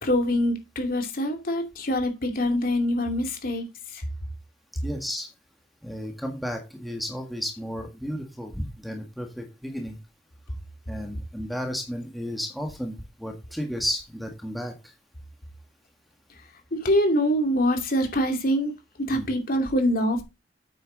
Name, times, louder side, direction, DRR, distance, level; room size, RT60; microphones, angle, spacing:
voice 1, 0.0-3.7 3.9-4.0 16.7-18.7 19.0-20.2, equal, 50° left, 2.7 m, -24 dB
voice 2, 4.8-5.3 5.8-10.0 10.9-14.9 19.1-19.3, equal, ahead, 1.6 m, -33 dB
8.9 x 8.1 x 4.0 m
head